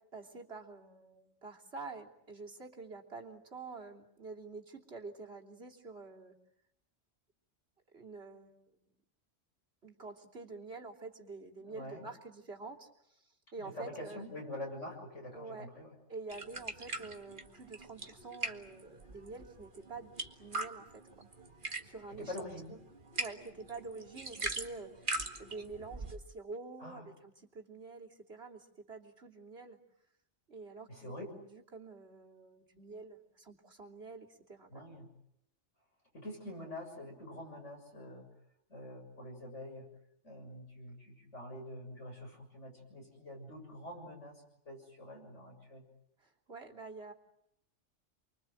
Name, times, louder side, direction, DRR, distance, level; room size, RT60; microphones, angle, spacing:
voice 1, 0.1-6.3 7.9-8.6 9.8-13.2 13.5-14.2 15.3-15.7 16.1-21.0 21.8-22.8 23.2-25.1 25.4-29.8 30.5-34.7 46.2-47.1, right 3 dB, 60° right, 0 dB, 3.4 m, -47 dB
voice 2, 11.6-12.1 13.6-16.0 22.1-22.7 26.8-27.1 30.9-31.2 34.7-35.1 36.1-38.3 38.7-39.9 40.2-45.8, left 1 dB, 90° left, 2 dB, 7.3 m, -46 dB
sound 1, 16.3-26.2, right 2 dB, 45° right, 2.1 m, -42 dB
29.5 x 23.5 x 7.6 m, 0.80 s
omnidirectional pair, 1.2 m